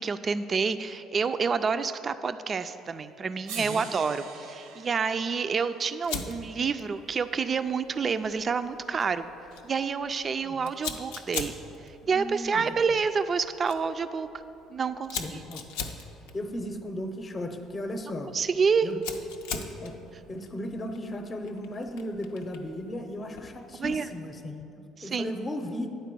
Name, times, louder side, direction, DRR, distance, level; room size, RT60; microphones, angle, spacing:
voice 1, 0.0-9.3 9.6-11.5 12.1-14.3 14.7-15.4 18.3-18.9 23.8-24.1 25.0-25.4, right 5 dB, 40° right, 11 dB, 0.4 m, -28 dB
sound 1, 2.8-2.9 3.5-7.7 9.0-9.1, right 6 dB, 80° right, 0.7 m, -46 dB
voice 2, 3.5-3.9 10.4-10.7 12.0-12.7 15.2-15.7 16.3-18.3 18.8-19.0 19.5-19.9 20.3-25.9, left 1 dB, 30° left, 6 dB, 0.7 m, -36 dB
Fire, 6.0-24.2, left 5 dB, 85° left, 0.5 m, -43 dB
9.2 x 4.4 x 7.5 m, 2.9 s
hypercardioid pair, 65°, 0 cm